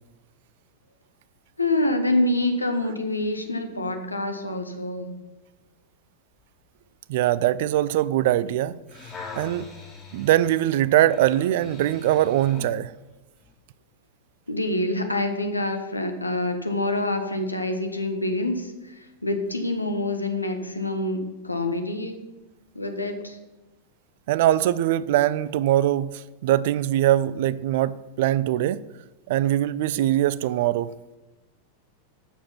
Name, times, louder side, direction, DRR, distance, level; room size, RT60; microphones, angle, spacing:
voice 1, 1.6-5.1 14.5-22.2 22.7-23.4, left 2 dB, 85° left, 1.3 m, -26 dB
voice 2, 7.1-8.7 9.4-9.7 10.1-13.0 24.3-28.8 29.3-30.9, right 13 dB, 50° right, 0.4 m, -22 dB
sound 1, 8.9-12.7 13.4-13.5, left 4 dB, 20° left, 4.5 m, -42 dB
12.5 x 7.3 x 6.0 m
figure-of-eight pair, 90°, 0 cm